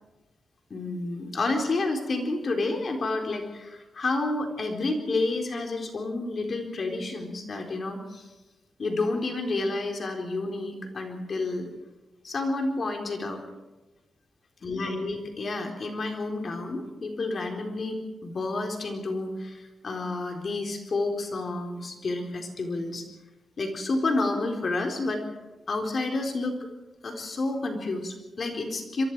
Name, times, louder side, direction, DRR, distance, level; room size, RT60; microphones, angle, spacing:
voice 1, 0.7-8.3 8.8-11.7 12.2-13.4 14.6-23.0 23.6-25.3 25.7-26.5 27.0-29.0, left 2 dB, 45° left, 3 dB, 3.8 m, -30 dB
27.0 x 23.0 x 4.7 m, 1.1 s
wide cardioid pair, 110°, 0 cm